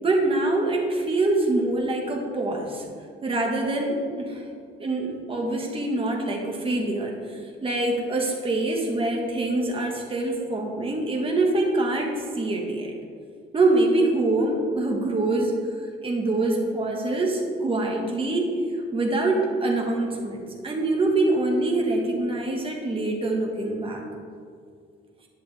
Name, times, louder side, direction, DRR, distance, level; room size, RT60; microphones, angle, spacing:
voice 1, 0.0-2.8 3.2-4.4 4.8-7.1 7.6-12.9 13.5-15.5 16.0-18.5 18.9-24.0, right 2 dB, 25° right, 0 dB, 1.7 m, -24 dB
11.0 x 10.5 x 3.6 m, 2.2 s
cardioid pair, 160°, 20 cm